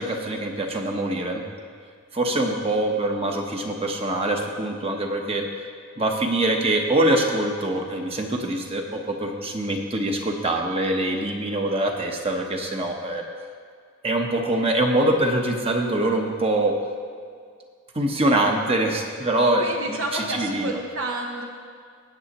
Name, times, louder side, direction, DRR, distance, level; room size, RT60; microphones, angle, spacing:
voice 1, 0.0-1.4 2.1-5.5 6.0-13.2 14.0-16.8 17.9-20.7, right 1 dB, 30° right, 2 dB, 1.0 m, -24 dB
voice 2, 19.6-21.4, right 2 dB, 75° right, 1 dB, 1.2 m, -30 dB
17.5 x 8.2 x 3.0 m, 2.1 s
head